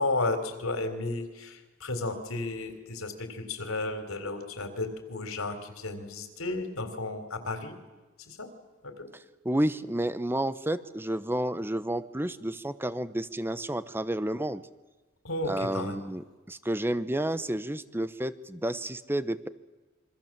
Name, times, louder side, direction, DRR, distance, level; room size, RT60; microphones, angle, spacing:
voice 1, 0.0-7.8 8.3-8.5 8.8-9.1 15.2-16.0, left 2 dB, 85° left, 7 dB, 3.8 m, -33 dB
voice 2, 9.4-14.6 15.5-19.5, right 1 dB, 10° right, 14 dB, 0.9 m, -30 dB
27.5 x 25.0 x 7.5 m, 1.2 s
head